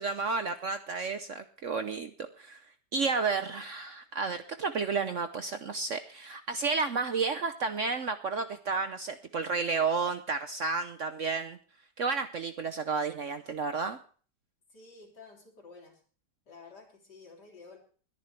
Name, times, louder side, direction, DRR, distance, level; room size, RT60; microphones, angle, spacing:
voice 1, 0.0-2.1 2.4-2.6 2.9-11.6 12.0-14.0, right 4 dB, 55° right, 9 dB, 0.9 m, -31 dB
voice 2, 14.7-16.0 16.5-17.8, left 4 dB, 65° left, 1 dB, 4.0 m, -51 dB
21.0 x 10.5 x 3.3 m, 0.41 s
omnidirectional pair, 1.9 m